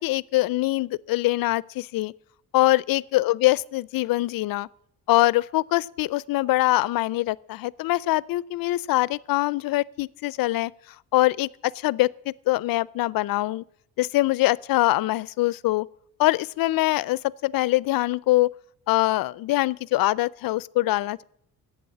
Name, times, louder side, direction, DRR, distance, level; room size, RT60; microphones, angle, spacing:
voice 1, 0.0-2.1 2.5-4.7 5.1-10.7 11.1-13.6 14.0-15.9 16.2-18.5 18.9-21.2, left 18 dB, 70° left, 0.5 m, -23 dB
11.0 x 8.4 x 9.8 m
cardioid pair, 145°, 37 cm